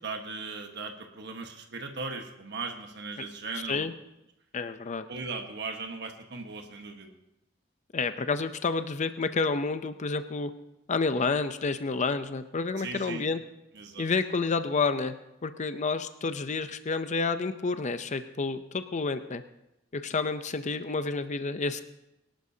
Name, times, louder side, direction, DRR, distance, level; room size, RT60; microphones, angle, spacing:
voice 1, 0.0-3.9 5.1-7.1 12.8-13.2 13.7-14.1, right 4 dB, 60° right, 4 dB, 1.3 m, -38 dB
voice 2, 4.5-5.0 7.9-10.5 10.9-13.4 14.0-15.2 15.4-19.4 19.9-21.8, left 4 dB, 40° left, 10 dB, 0.5 m, -29 dB
23.0 x 11.5 x 2.8 m, 0.89 s
head